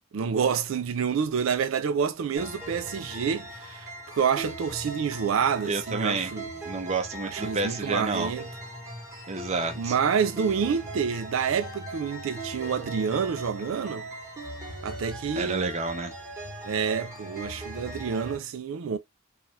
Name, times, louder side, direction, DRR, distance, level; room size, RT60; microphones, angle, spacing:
voice 1, 0.1-6.5 7.3-8.5 9.8-14.1 14.8-15.7 16.6-19.0, right 6 dB, 85° right, 0.4 m, -28 dB
sound 1, 2.4-18.4, right 1 dB, 15° right, 1.1 m, -39 dB
voice 2, 5.6-6.3 6.7-8.3 9.3-9.9 15.4-16.1, right 3 dB, 35° right, 0.7 m, -29 dB
3.2 x 2.4 x 2.7 m
head